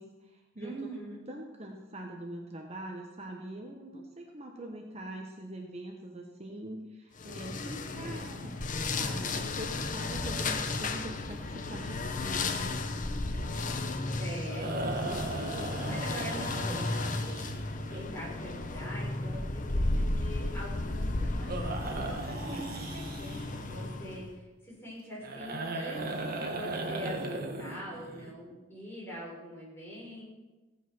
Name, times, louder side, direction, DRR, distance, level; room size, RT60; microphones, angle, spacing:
voice 1, 0.0-0.9 1.3-8.6 9.0-12.6 22.4-22.9, right 1 dB, 35° right, 2 dB, 1.2 m, -43 dB
voice 2, 0.6-1.3 14.2-15.5 15.9-17.4 17.9-30.2, equal, 10° left, -6 dB, 5.8 m, -43 dB
sound 1, 7.2-24.3, left 2 dB, 40° left, 0.9 m, -34 dB
sound 2, 13.2-18.0 21.5-23.7 25.2-28.3, right 2 dB, 50° right, 1.5 m, -38 dB
16.0 x 9.2 x 6.1 m, 1.2 s
head